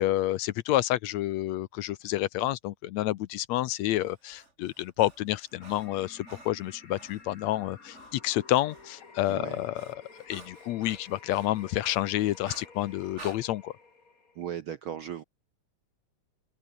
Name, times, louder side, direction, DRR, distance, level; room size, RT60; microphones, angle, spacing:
voice 1, 0.0-9.9 10.3-13.7, left 15 dB, 75° left, 1.9 m, -29 dB
Breathing, 4.0-7.3 7.9-8.2 8.4-13.4, right 3 dB, 25° right, 2.7 m, -51 dB
sound 1, 5.5-14.5, left 4 dB, 30° left, 3.2 m, -52 dB
voice 2, 9.3-9.6 14.3-15.2, right 10 dB, 70° right, 1.3 m, -37 dB
omnidirectional pair, 3.4 m